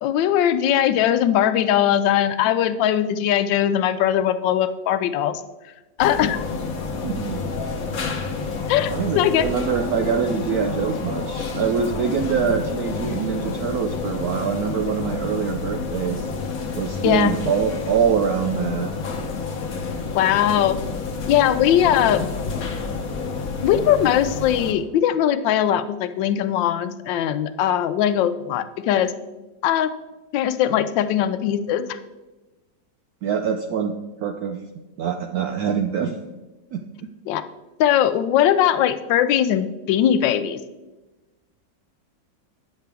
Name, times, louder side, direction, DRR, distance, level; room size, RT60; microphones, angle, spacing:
voice 1, 0.0-5.4 6.0-6.4 8.7-9.5 17.0-17.3 20.1-20.8 21.3-22.3 23.6-29.1 29.6-29.9 30.3-32.0 37.3-37.4 37.8-40.6, left 10 dB, 85° left, 12 dB, 1.3 m, -20 dB
sound 1, 6.0-24.7, left 4 dB, 55° left, 1.2 m, -29 dB
voice 2, 7.0-7.4 8.9-16.3 16.7-18.9 33.2-33.9 34.2-34.6 35.0-36.2 36.7-36.8, right 7 dB, 75° right, 5 dB, 0.9 m, -24 dB
9.3 x 6.7 x 3.4 m, 1.1 s
omnidirectional pair, 2.0 m